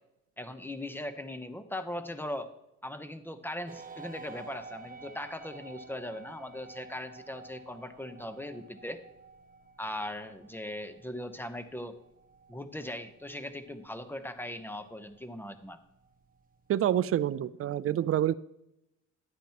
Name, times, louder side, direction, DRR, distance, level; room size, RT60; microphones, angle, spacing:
voice 1, 0.4-2.5 2.8-9.0 9.8-12.0 12.5-15.8, left 1 dB, 5° left, 10 dB, 0.9 m, -39 dB
sound 1, 3.7-17.3, right 4 dB, 30° right, 1.1 m, -52 dB
voice 2, 16.7-18.3, right 11 dB, 50° right, 18 dB, 0.4 m, -27 dB
11.5 x 8.9 x 2.9 m, 0.84 s
cardioid pair, 90°, 30 cm